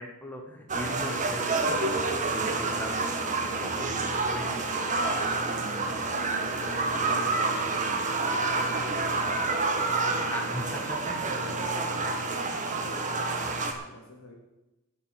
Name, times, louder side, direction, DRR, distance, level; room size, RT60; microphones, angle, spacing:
voice 1, 0.0-1.9 2.3-4.5 10.3-11.3, left 1 dB, 10° left, 2 dB, 1.3 m, -39 dB
sound 1, 0.7-13.7, right 3 dB, 35° right, 1.6 m, -28 dB
voice 2, 4.9-9.7 10.0-10.3 11.3-14.3, left 1 dB, 70° left, -1 dB, 3.9 m, -46 dB
10.5 x 7.3 x 9.1 m, 1.0 s
head